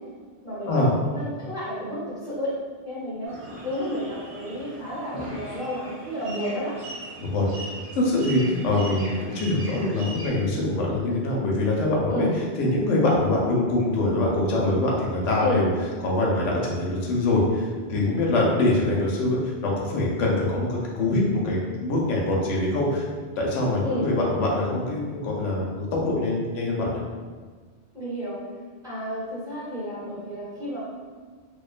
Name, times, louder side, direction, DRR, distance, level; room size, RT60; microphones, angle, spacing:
voice 1, 0.4-2.5 2.8-3.4 3.6-6.7 12.1-12.3 15.4-15.6 23.8-24.1 27.9-28.4 28.8-30.8, equal, 5° right, -11 dB, 0.8 m, -31 dB
sound 1, 3.3-10.3, right 1 dB, 50° right, 0.4 m, -39 dB
voice 2, 7.9-12.3 12.6-15.7 16.0-23.1 23.4-27.0, left 2 dB, 90° left, -3 dB, 0.9 m, -24 dB
2.5 x 2.2 x 2.4 m, 1.5 s
omnidirectional pair, 1.2 m